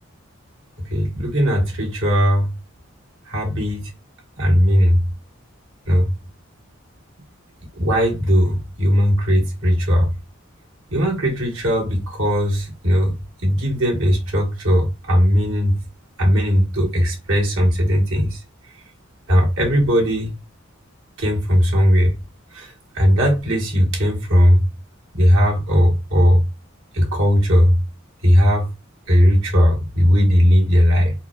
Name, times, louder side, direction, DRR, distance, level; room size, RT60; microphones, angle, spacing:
voice 1, 0.9-2.5 3.3-3.9 4.4-5.0 5.9-6.1 7.8-10.1 10.9-13.1 13.4-15.8 16.2-18.4 19.3-20.4 21.2-22.1 22.5-22.7 22.9-24.6 25.1-26.4 26.9-27.7 28.2-28.7 29.1-31.1, equal, 70° right, 1.4 m, -17 dB
3.9 x 2.1 x 2.4 m
head